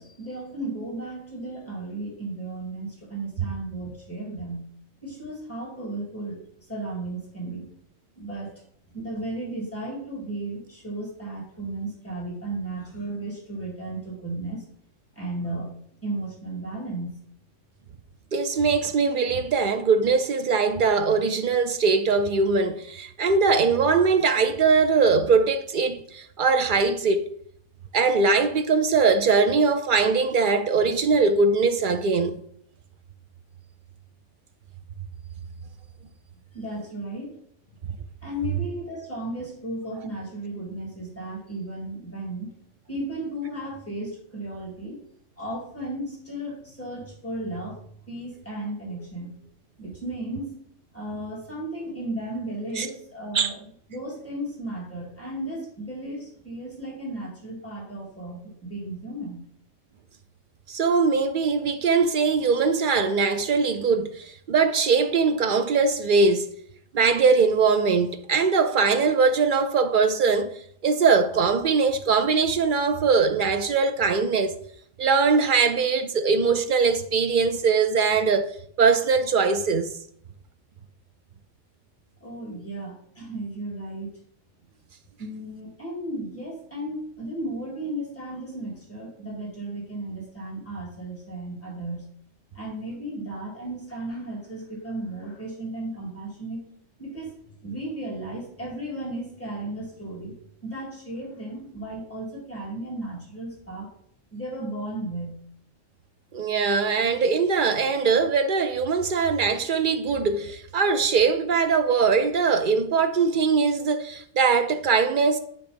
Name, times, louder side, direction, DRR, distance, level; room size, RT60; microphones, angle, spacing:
voice 1, 0.0-4.7 5.0-6.4 6.7-7.6 8.1-8.5 8.9-14.6 15.1-15.7 16.0-17.2 36.5-37.4 38.2-42.5 42.9-45.0 45.4-47.8 48.1-49.4 49.8-50.5 50.9-53.6 53.9-59.4 82.2-84.1 85.2-92.0 92.5-96.6 97.0-97.3 97.6-100.3 100.6-103.9 104.3-105.4, right 1 dB, 10° left, 2.7 m, -34 dB
voice 2, 18.3-27.3 27.9-32.4 52.8-52.9 53.3-53.5 60.7-66.5 66.9-74.6 75.0-79.9 106.3-115.4, right 4 dB, 60° right, 0.5 m, -21 dB
9.3 x 3.2 x 5.2 m
omnidirectional pair, 1.3 m